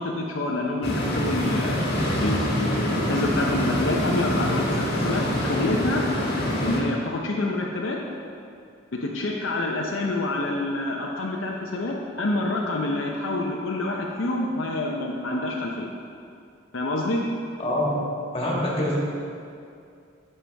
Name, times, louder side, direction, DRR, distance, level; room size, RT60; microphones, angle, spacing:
voice 1, 0.0-1.9 2.2-6.0 6.6-8.0 9.0-15.9 16.7-17.2, left 2 dB, 70° left, -1 dB, 0.7 m, -27 dB
sound 1, 0.8-6.8, equal, 50° left, 1.4 m, -25 dB
voice 2, 17.6-18.1 18.3-19.0, left 1 dB, 30° left, -5 dB, 1.7 m, -25 dB
10.0 x 6.7 x 3.4 m, 2.4 s
head